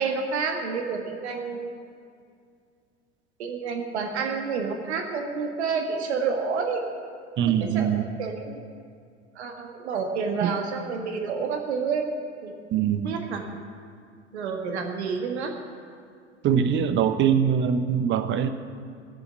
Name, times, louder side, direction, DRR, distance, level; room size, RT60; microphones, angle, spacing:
voice 1, 0.0-1.7 3.4-6.9 7.4-8.6 9.3-12.1 12.4-12.5 13.0-13.4 14.3-15.5, right 5 dB, 65° right, 3 dB, 1.7 m, -29 dB
voice 2, 7.4-8.0 10.4-10.5 12.7-13.2 16.4-18.5, right 8 dB, 30° right, 9 dB, 1.1 m, -23 dB
18.0 x 7.1 x 9.2 m, 2.2 s
figure-of-eight pair, 80°, 36 cm